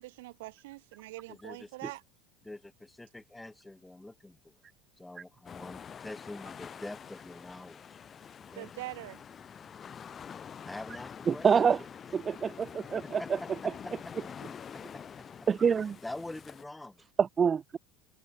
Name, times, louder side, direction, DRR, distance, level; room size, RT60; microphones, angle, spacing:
voice 1, 0.0-2.0 8.6-9.2, right 20 dB, 70° right, 2.2 m, -43 dB
voice 2, 1.3-1.9 2.4-4.5 5.0-8.0 8.4-8.7 10.6-11.9 12.8-14.8 15.2-15.7 16.0-17.0, left 2 dB, 10° left, 6.8 m, -46 dB
sound 1, 5.5-16.6, left 7 dB, 35° left, 3.6 m, -46 dB
voice 3, 11.3-11.8 12.1-13.2 15.5-16.0 17.2-17.8, right 6 dB, 30° right, 0.6 m, -26 dB
figure-of-eight pair, 75°, 0 cm